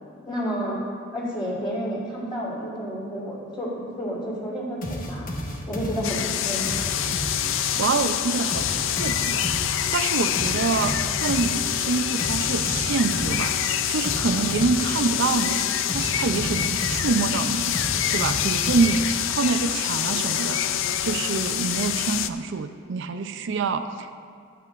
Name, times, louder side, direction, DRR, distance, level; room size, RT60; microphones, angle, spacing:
voice 1, 0.2-0.8 1.1-5.3 5.7-6.9, equal, 25° left, -6 dB, 3.3 m, -30 dB
sound 1, 4.8-7.9 8.5-15.2 15.9-19.4, equal, 45° left, 1.2 m, -33 dB
sound 2, 6.0-22.3, left 10 dB, 65° left, 0.4 m, -26 dB
voice 2, 7.8-9.6 9.9-17.8 18.1-20.8 21.0-24.1, right 4 dB, 60° right, 8 dB, 0.5 m, -26 dB
24.0 x 8.4 x 2.5 m, 2.2 s
head